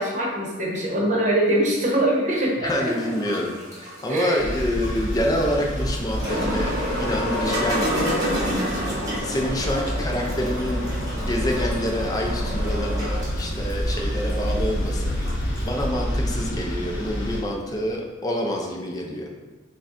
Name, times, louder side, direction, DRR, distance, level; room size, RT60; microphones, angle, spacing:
voice 1, 0.0-3.1 4.1-4.5, right 1 dB, 40° right, -2 dB, 0.9 m, -23 dB
voice 2, 2.6-8.6 9.2-10.9 11.2-15.1 15.6-19.3, left 1 dB, 20° left, 0 dB, 0.5 m, -27 dB
sound 1, 2.7-15.7, equal, 20° right, 1.2 m, -30 dB
sound 2, 4.4-17.4, equal, 70° left, 0.8 m, -28 dB
6.2 x 2.1 x 2.6 m, 1.3 s
head